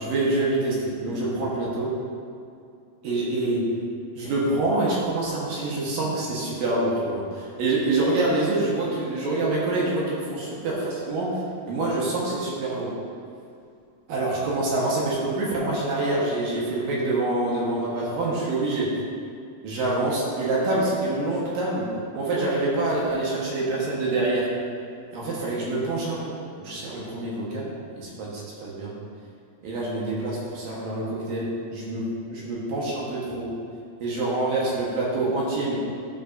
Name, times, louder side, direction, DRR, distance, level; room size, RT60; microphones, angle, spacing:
voice 1, 0.0-1.9 3.0-3.7 4.2-11.4 11.7-12.9 14.1-18.9 19.6-24.5 25.1-28.9 29.6-33.5 34.0-35.7, right 2 dB, 65° right, -5 dB, 2.6 m, -26 dB
12.5 x 6.5 x 2.6 m, 2.5 s
omnidirectional pair, 5.0 m